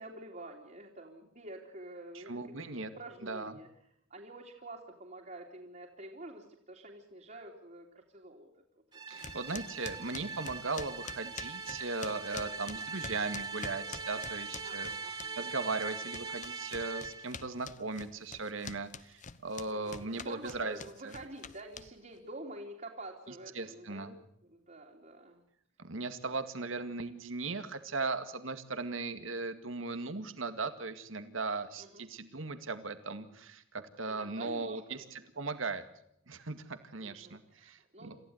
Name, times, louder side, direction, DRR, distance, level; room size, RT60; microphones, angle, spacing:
voice 1, 0.0-3.7 4.1-8.5 9.1-9.2 12.4-12.7 14.6-15.4 19.7-25.4 31.8-32.1 34.1-35.5 37.0-38.2, right 1 dB, 40° right, -2 dB, 3.1 m, -48 dB
voice 2, 2.1-2.9 3.2-3.5 9.1-14.9 15.4-20.8 23.6-24.2 25.8-35.8 36.3-38.2, right 3 dB, 80° right, 10 dB, 2.1 m, -38 dB
sound 1, 8.9-17.4, right 4 dB, 20° right, 2.5 m, -41 dB
sound 2, 9.2-15.5 15.8-22.2, left 5 dB, 40° left, 1.0 m, -46 dB
28.0 x 15.5 x 8.0 m, 0.73 s
head